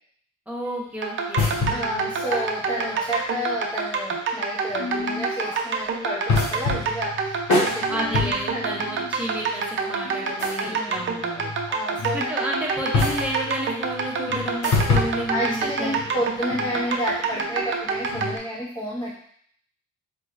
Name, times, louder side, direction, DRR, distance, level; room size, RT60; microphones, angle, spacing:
voice 1, 0.5-2.1 7.9-11.5 12.1-16.2, equal, 5° right, -4 dB, 1.0 m, -31 dB
sound 1, 1.0-18.4, right 5 dB, 40° right, 0.6 m, -27 dB
sound 2, 1.4-3.7 4.1-4.3 4.7-5.6 6.3-12.3 12.7-18.4, left 3 dB, 70° left, 1.0 m, -29 dB
voice 2, 1.7-8.0 8.5-8.8 10.6-11.0 11.7-12.3 15.3-19.1, equal, 15° left, -5 dB, 0.6 m, -30 dB
4.1 x 2.9 x 2.5 m, 0.63 s
cardioid pair, 90°, 30 cm